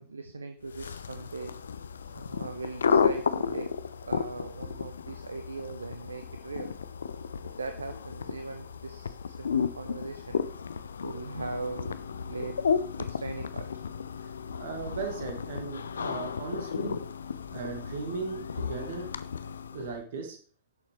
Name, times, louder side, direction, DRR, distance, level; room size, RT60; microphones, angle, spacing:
voice 1, 0.0-1.5 2.1-3.7 4.0-6.7 7.4-10.4 11.0-12.0 12.3-12.6 13.0-13.7, right 3 dB, 75° right, 8 dB, 0.6 m, -39 dB
sound 1, 0.7-20.0, left 6 dB, 70° left, 0.4 m, -33 dB
voice 2, 14.6-17.0 17.5-19.1 19.7-20.4, right 4 dB, 60° right, 4 dB, 1.9 m, -37 dB
10.5 x 7.1 x 3.2 m, 0.43 s
figure-of-eight pair, 90°, 0 cm